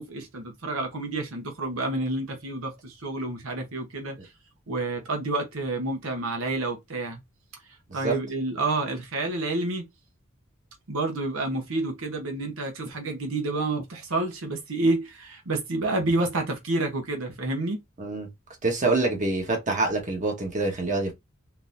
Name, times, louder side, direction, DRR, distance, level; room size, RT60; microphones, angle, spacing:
voice 1, 0.0-4.2 4.7-7.2 7.9-9.9 10.9-17.8, right 2 dB, 90° right, 0.9 m, -29 dB
voice 2, 18.0-18.3 18.6-21.1, right 3 dB, 40° right, 1.2 m, -26 dB
3.8 x 2.7 x 2.5 m
head